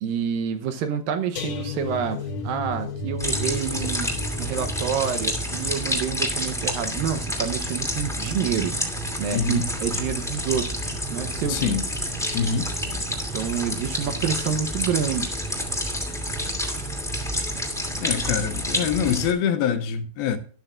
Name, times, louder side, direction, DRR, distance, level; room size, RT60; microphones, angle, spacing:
voice 1, 0.0-4.1 4.4-8.8 9.2-11.8 12.9-15.3, right 8 dB, 75° right, 2.2 m, -28 dB
sound 1, 1.4-8.4 8.8-9.1 9.4-9.5, left 3 dB, 50° left, 2.4 m, -35 dB
sound 2, 3.2-19.3, equal, ahead, 1.0 m, -29 dB
voice 2, 9.3-9.6 11.4-11.9 12.3-12.7 18.0-20.4, left 7 dB, 75° left, 2.4 m, -25 dB
12.5 x 12.0 x 2.4 m
omnidirectional pair, 4.9 m